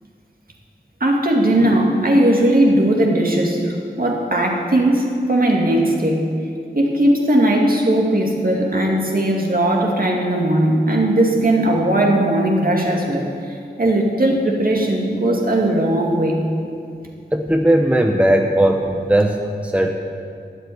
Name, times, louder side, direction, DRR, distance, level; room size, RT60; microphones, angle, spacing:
voice 1, 1.0-6.3 6.7-16.4, right 1 dB, 50° right, -1 dB, 2.3 m, -18 dB
voice 2, 17.3-19.9, right 1 dB, 5° right, 3 dB, 0.9 m, -17 dB
12.0 x 8.1 x 9.5 m, 2.5 s
wide cardioid pair, 70°, 18 cm